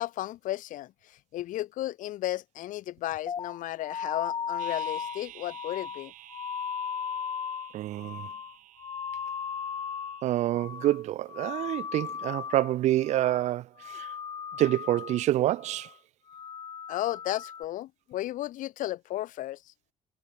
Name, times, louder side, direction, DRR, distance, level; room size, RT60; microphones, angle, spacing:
voice 1, 0.0-6.1 16.9-19.6, left 14 dB, 85° left, 1.6 m, -34 dB
sound 1, 3.3-10.2 10.5-11.0 11.3-12.8 13.0-13.5 13.8-15.2 15.6-15.9 16.3-17.6, left 7 dB, 35° left, 2.9 m, -36 dB
sound 2, 4.6-10.5, right 14 dB, 80° right, 5.5 m, -51 dB
voice 2, 7.7-8.3 10.2-14.1 14.6-15.9, right 14 dB, 60° right, 0.4 m, -27 dB
cardioid pair, 170°, 13 cm